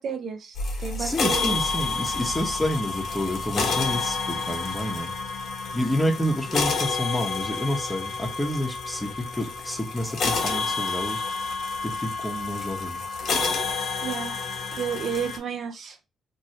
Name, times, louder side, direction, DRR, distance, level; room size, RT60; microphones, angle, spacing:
voice 1, 0.0-1.5 14.0-14.4 14.8-16.1, right 7 dB, 60° right, 0.7 m, -31 dB
sound 1, 0.6-15.4, left 4 dB, 60° left, 0.9 m, -29 dB
voice 2, 1.0-5.1 5.7-11.2 11.8-13.0, equal, 10° left, 1.0 m, -29 dB
3.0 x 2.7 x 2.7 m
cardioid pair, 90°, 0 cm